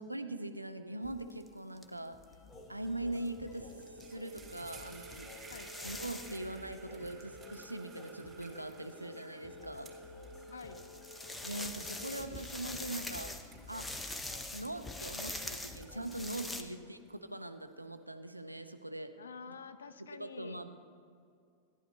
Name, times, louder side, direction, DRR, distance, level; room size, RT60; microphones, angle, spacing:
voice 1, 0.0-2.2 2.7-5.3 5.8-9.9 11.4-13.9 14.5-19.1 19.5-19.6 20.0-20.8, right 1 dB, 85° right, 9 dB, 0.6 m, -42 dB
sound 1, 1.0-1.5 1.8-1.9 2.1-2.3 3.3-7.2 8.7-8.8 9.6-9.7 10.6-16.6, left 2 dB, 10° left, 0.8 m, -44 dB
sound 2, 2.3-16.5, left 1 dB, 30° left, 1.3 m, -52 dB
sound 3, 3.5-3.6 3.8-15.3 15.7-17.6, right 4 dB, 15° right, 2.3 m, -57 dB
voice 2, 10.5-10.8 16.4-16.9 19.2-20.6, left 6 dB, 70° left, 11 dB, 0.6 m, -49 dB
14.5 x 10.5 x 3.3 m, 2.4 s
figure-of-eight pair, 90°, 0 cm